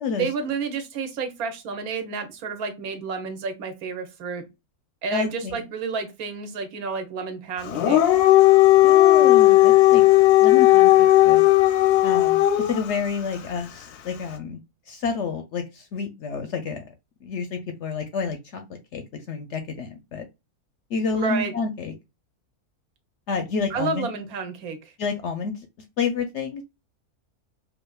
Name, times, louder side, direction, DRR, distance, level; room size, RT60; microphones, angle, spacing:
voice 1, 0.1-4.4 5.0-8.0 21.1-21.5 23.7-24.9, right 5 dB, 75° right, 1.2 m, -30 dB
voice 2, 5.1-5.6 8.8-10.0 10.4-10.9 11.2-11.5 12.0-14.6 14.9-16.8 17.2-18.6 18.9-20.3 20.9-21.9 23.3-24.1 25.0-25.5 26.0-26.6, left 5 dB, 65° left, 0.7 m, -29 dB
Dog, 7.7-12.8, left 16 dB, 85° left, 1.1 m, -15 dB
4.8 x 2.5 x 2.3 m
omnidirectional pair, 1.6 m